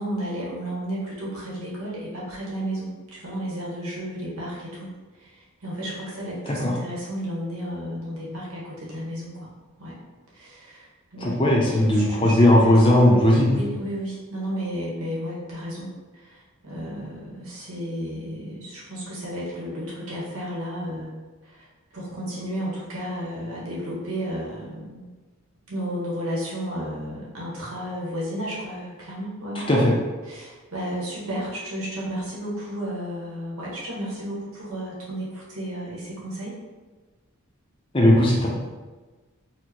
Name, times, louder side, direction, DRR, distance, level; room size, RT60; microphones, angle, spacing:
voice 1, 0.0-9.5 9.8-10.0 10.3-13.1 13.5-21.1 21.4-21.7 21.9-25.0 25.7-29.7 30.2-36.6, equal, 85° right, -5 dB, 1.1 m, -33 dB
voice 2, 11.2-13.5 29.7-29.9 37.9-38.5, left 1 dB, 25° left, -3 dB, 0.5 m, -17 dB
4.4 x 2.1 x 2.9 m, 1.3 s
head